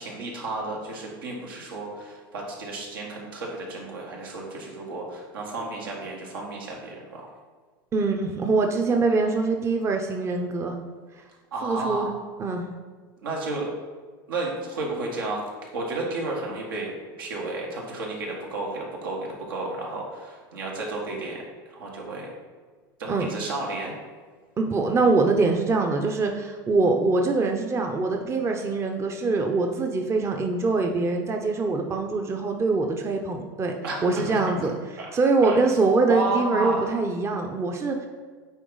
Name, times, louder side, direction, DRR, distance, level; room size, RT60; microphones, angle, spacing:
voice 1, 0.0-7.3 11.5-12.2 13.2-13.8 14.3-15.4 15.7-16.9 17.2-22.3 23.0-23.9 33.8-34.4 35.0-35.1 35.5-35.6 36.1-36.9, right 2 dB, 85° right, -2 dB, 1.6 m, -32 dB
voice 2, 7.9-10.7 11.6-12.1 12.4-12.7 23.1-23.3 24.6-33.8 34.0-34.7 35.1-38.1, right 3 dB, 25° right, 3 dB, 0.7 m, -23 dB
8.9 x 3.0 x 3.9 m, 1.5 s
hypercardioid pair, 100°, 11 cm